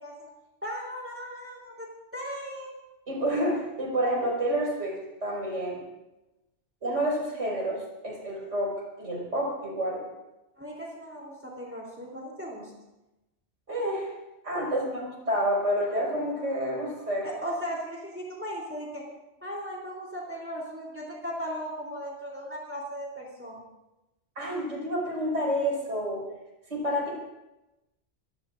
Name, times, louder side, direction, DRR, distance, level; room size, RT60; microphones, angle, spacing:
voice 1, 0.6-1.9 2.1-2.8 10.6-12.7 17.2-19.0 19.4-23.6, equal, 10° right, -3 dB, 3.6 m, -37 dB
voice 2, 3.1-5.8 6.8-10.1 13.7-14.1 14.4-17.3 24.4-26.3 26.7-27.1, equal, 80° right, -3 dB, 6.0 m, -29 dB
27.5 x 17.5 x 2.6 m, 0.98 s
omnidirectional pair, 1.2 m